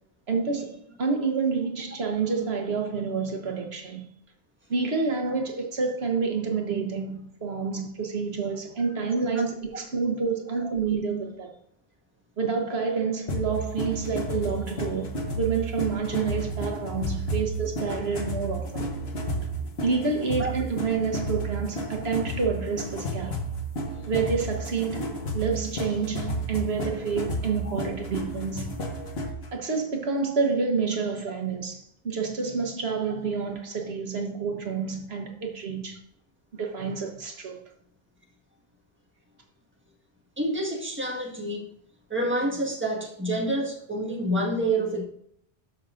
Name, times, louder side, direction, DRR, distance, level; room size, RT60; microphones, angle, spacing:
voice 1, 0.3-4.0 4.7-11.6 12.4-18.8 19.8-23.4 24.1-25.0 25.3-28.7 29.5-36.0 36.5-37.6, right 5 dB, 80° right, 1.4 m, -28 dB
sound 1, 13.3-29.5, right 1 dB, 75° left, 1.5 m, -32 dB
voice 2, 40.4-41.7 42.1-45.0, right 1 dB, 10° right, 1.6 m, -28 dB
13.0 x 5.7 x 2.5 m
omnidirectional pair, 1.1 m